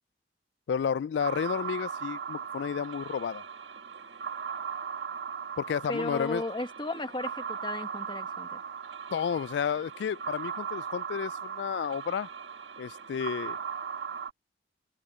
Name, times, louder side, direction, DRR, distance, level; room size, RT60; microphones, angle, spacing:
voice 1, 0.7-3.4 5.6-6.4 9.1-12.3 12.8-13.6, left 7 dB, 75° left, 0.3 m, -31 dB
sound 1, 1.2-14.3, right 7 dB, 80° right, 1.9 m, -38 dB
voice 2, 5.9-8.6, left 2 dB, 25° left, 1.5 m, -35 dB
head